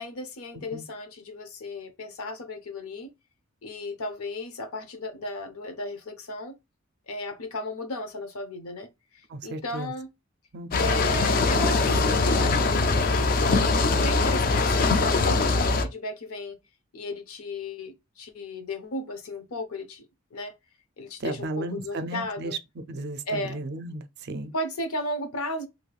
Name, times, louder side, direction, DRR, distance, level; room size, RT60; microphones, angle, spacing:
voice 1, 0.0-3.1 3.6-6.6 7.1-10.1 10.8-13.3 14.0-16.6 16.9-20.1 20.3-20.5 21.0-22.6 23.3-23.6 24.5-25.7, left 2 dB, 85° left, 0.7 m, -35 dB
voice 2, 9.3-9.9 10.5-11.0 21.2-22.6 22.9-24.5, right 2 dB, 50° right, 0.4 m, -34 dB
sound 1, 10.7-15.8, left 3 dB, 40° left, 0.4 m, -22 dB
3.2 x 2.7 x 2.3 m
head